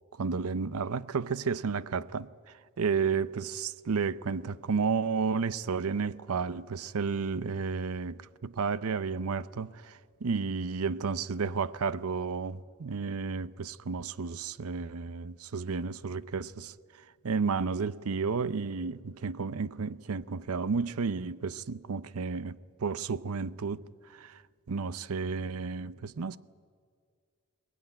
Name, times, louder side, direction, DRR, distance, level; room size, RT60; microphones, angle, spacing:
voice 1, 0.1-2.3 2.8-24.4 24.7-26.4, right 5 dB, 90° right, 0.6 m, -32 dB
22.0 x 19.5 x 9.9 m
head